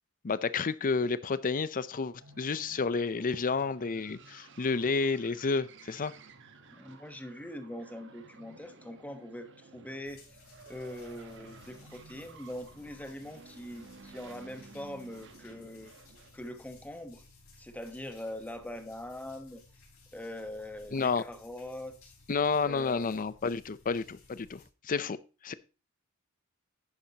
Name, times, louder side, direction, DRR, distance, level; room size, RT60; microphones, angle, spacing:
voice 1, 0.2-6.1 20.9-21.2 22.3-25.2 25.4-25.5, left 4 dB, 40° left, 0.5 m, -30 dB
sound 1, 2.2-16.4, right 4 dB, 60° right, 1.1 m, -54 dB
voice 2, 6.7-10.2 10.7-15.9 16.3-17.2 17.6-19.6 20.1-22.1 22.6-23.2, left 1 dB, 5° left, 1.1 m, -42 dB
sound 2, 10.0-24.6, left 3 dB, 80° left, 4.4 m, -59 dB
11.0 x 9.9 x 2.9 m
head